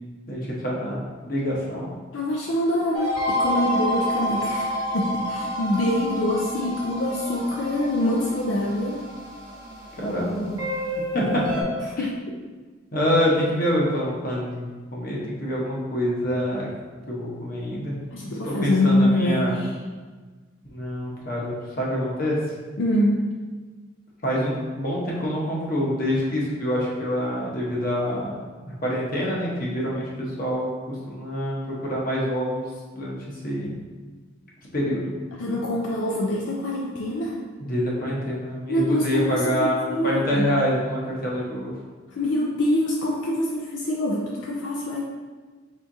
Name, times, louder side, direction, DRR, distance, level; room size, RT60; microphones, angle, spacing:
voice 1, 0.3-1.9 10.0-10.5 11.1-11.4 12.0-12.1 12.9-16.7 17.1-18.0 18.4-19.5 20.7-22.4 24.2-33.2 33.4-33.8 34.7-35.1 37.6-41.7, equal, 45° left, -4 dB, 1.0 m, -26 dB
voice 2, 2.1-9.0 12.0-12.3 18.1-19.7 22.8-23.2 35.4-37.4 38.7-40.5 42.1-45.0, left 1 dB, 70° left, -2 dB, 0.4 m, -25 dB
sound 1, 2.9-11.6, equal, 20° right, 0.9 m, -29 dB
4.4 x 3.5 x 2.7 m, 1.4 s
head